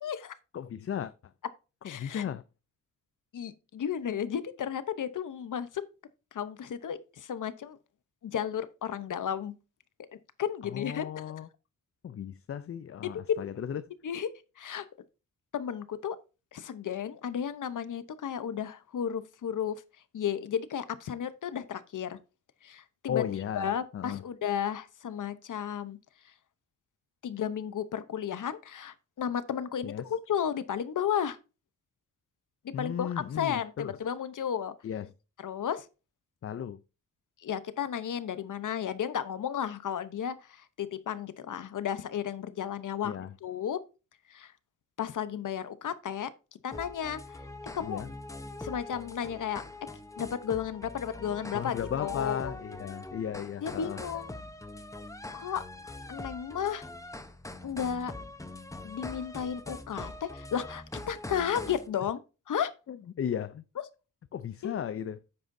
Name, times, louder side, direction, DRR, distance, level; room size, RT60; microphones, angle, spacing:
voice 1, 0.0-0.3 1.8-2.2 3.3-5.8 6.3-7.8 8.2-9.5 10.4-11.3 13.3-13.6 14.0-14.3 14.6-14.8 15.5-16.2 16.5-19.8 20.1-22.2 22.6-23.2 23.5-26.0 27.2-31.4 32.8-34.7 35.4-35.9 37.4-43.1 43.4-43.8 44.3-44.5 45.0-46.3 46.6-47.4 47.7-48.0 48.6-49.6 50.2-52.5 53.6-54.3 55.3-55.6 56.1-56.8 57.6-58.1 58.8-62.2 62.5-62.7 64.6-64.8, left 8 dB, 65° left, 0.8 m, -33 dB
voice 2, 0.5-1.1 1.8-2.4 10.6-11.5 12.0-13.8 23.1-24.2 29.8-30.0 32.7-33.9 34.8-35.1 36.4-36.8 43.0-43.3 47.8-48.1 51.5-54.0 62.9-63.6 64.3-65.2, left 9 dB, 40° left, 0.4 m, -35 dB
sound 1, 46.7-61.9, left 2 dB, 10° left, 0.8 m, -43 dB
9.3 x 7.9 x 2.6 m
cardioid pair, 100°, 34 cm